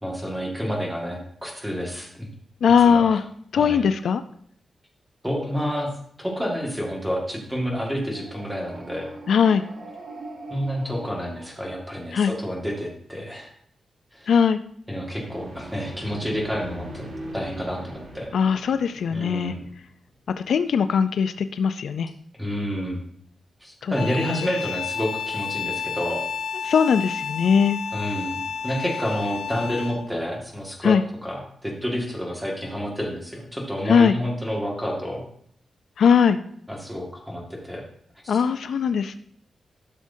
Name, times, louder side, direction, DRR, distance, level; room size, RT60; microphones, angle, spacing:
voice 1, 0.0-2.3 2.8-3.2 3.6-3.8 5.2-5.9 6.2-9.1 10.5-13.5 14.1-14.3 14.9-17.0 17.3-18.3 19.1-19.6 22.3-23.0 23.6-26.2 27.9-30.9 31.2-35.2 36.7-37.8, equal, 5° right, -1 dB, 1.7 m, -29 dB
voice 2, 2.6-3.2 3.5-4.2 9.3-9.6 12.1-12.3 14.3-14.6 18.3-19.5 20.5-22.1 23.8-23.9 24.3-24.4 26.6-27.8 30.8-31.0 33.9-34.1 36.0-36.4 38.3-39.2, left 6 dB, 70° left, 11 dB, 0.4 m, -20 dB
sound 1, 8.0-12.3 14.9-19.9, right 1 dB, 55° right, 1.8 m, -41 dB
sound 2, 23.9-30.1, left 7 dB, 90° left, 1.5 m, -31 dB
12.0 x 6.3 x 2.7 m, 0.63 s
wide cardioid pair, 170°, 0 cm